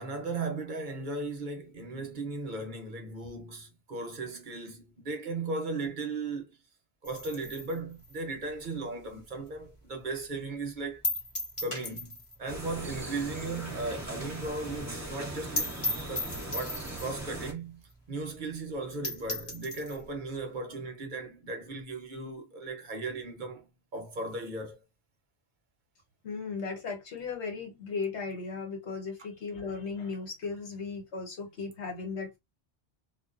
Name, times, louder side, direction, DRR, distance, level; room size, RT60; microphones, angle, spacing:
voice 1, 0.0-6.6 7.0-11.0 11.6-15.8 16.1-23.7 23.9-24.8, right 3 dB, 50° right, 0.8 m, -37 dB
sound 1, 7.0-9.7 10.0-10.1 10.4-10.5 11.0-12.4 12.7-12.8 13.1-13.2 13.6-13.7 14.0-14.1 14.3-14.4 14.7-14.8 15.2-15.3 15.6-17.2 17.9-18.0 18.3-18.4 18.8-18.9 19.0-20.0, left 2 dB, 30° left, 1.0 m, -36 dB
sound 2, 12.5-17.5, right 1 dB, 15° right, 0.8 m, -39 dB
voice 2, 26.2-32.4, left 4 dB, 90° left, 1.3 m, -36 dB
2.3 x 2.2 x 2.4 m
omnidirectional pair, 1.1 m